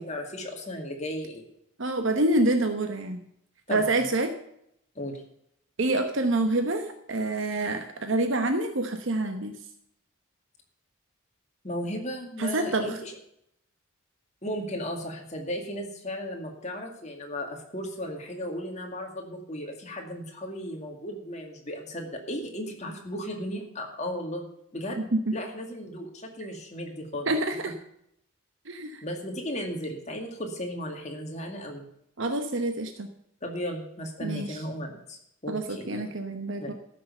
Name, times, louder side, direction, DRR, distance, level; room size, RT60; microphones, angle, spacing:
voice 1, 0.0-1.4 3.7-4.0 5.0-5.2 11.6-13.1 14.4-24.4 24.7-25.0 25.3-27.3 29.0-31.8 33.4-36.0 36.6-36.7, equal, 30° left, 2 dB, 2.3 m, -35 dB
voice 2, 1.8-3.2 3.7-4.3 5.8-9.5 12.4-13.0 25.1-25.2 27.3-27.7 28.7-29.0 32.2-33.1 34.2-34.6 35.5-36.7, right 2 dB, 60° right, 6 dB, 1.0 m, -27 dB
14.0 x 6.6 x 6.8 m, 0.75 s
head